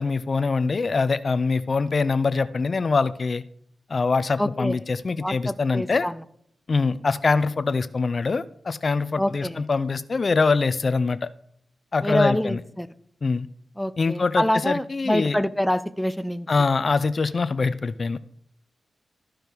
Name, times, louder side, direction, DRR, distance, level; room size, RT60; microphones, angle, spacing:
voice 1, 0.0-3.4 3.9-6.1 6.7-11.3 11.9-12.6 13.2-13.5 14.0-15.4 16.5-18.2, left 4 dB, 50° left, 15 dB, 0.5 m, -23 dB
voice 2, 4.4-4.8 5.2-6.2 9.2-9.6 12.0-12.9 13.8-16.5, left 1 dB, 5° left, 12 dB, 0.5 m, -26 dB
14.0 x 5.1 x 4.6 m, 0.67 s
cardioid pair, 60°, 0 cm